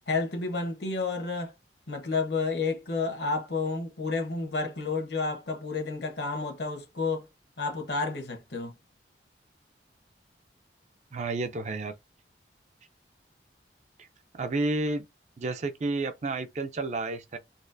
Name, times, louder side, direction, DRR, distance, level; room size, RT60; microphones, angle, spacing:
voice 1, 0.1-1.5 1.9-7.3 7.6-8.8, left 4 dB, 70° left, 1.1 m, -30 dB
voice 2, 11.1-11.9 14.3-15.0 15.4-17.4, right 2 dB, 40° right, 0.4 m, -30 dB
4.1 x 2.4 x 2.6 m
head